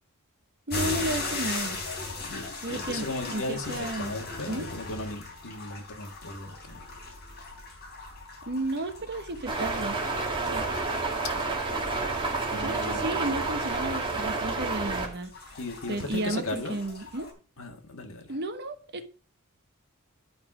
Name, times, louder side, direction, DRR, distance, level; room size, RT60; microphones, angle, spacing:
sound 1, 0.7-17.3, left 3 dB, 50° left, 3.6 m, -39 dB
voice 1, 0.7-1.8 2.6-4.1 4.5-4.7 8.5-10.0 10.5-10.7 12.5-15.6 15.9-17.3 18.3-19.1, right 2 dB, 50° right, 1.3 m, -33 dB
voice 2, 2.3-6.9 11.2-11.3 12.5-13.4 15.6-16.8 17.6-18.4, left 2 dB, 65° left, 1.8 m, -37 dB
sound 2, 9.5-15.1, right 3 dB, 25° right, 2.1 m, -30 dB
10.5 x 5.8 x 4.9 m
head